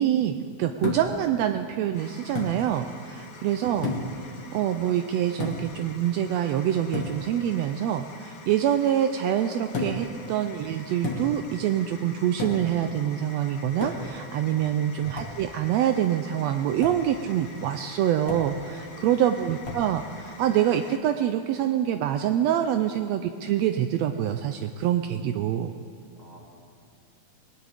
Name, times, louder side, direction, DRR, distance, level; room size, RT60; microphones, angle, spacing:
voice 1, 0.0-3.9 4.5-25.7, right 10 dB, 90° right, 7 dB, 1.5 m, -25 dB
sound 1, 0.8-1.3 2.4-2.6 3.8-4.2 5.4-5.8 6.9-7.2 9.7-10.1 11.0-11.5 12.4-12.8 13.8-14.2 15.2-15.4 16.8-17.1 18.3-18.6 19.6-19.9, left 3 dB, 40° left, 2.0 m, -32 dB
sound 2, 1.9-21.0, left 4 dB, 65° left, 1.2 m, -47 dB
voice 2, 18.8-19.2 26.1-26.4, right 1 dB, 15° right, -3 dB, 2.2 m, -50 dB
21.0 x 19.0 x 3.5 m, 2.6 s
omnidirectional pair, 3.6 m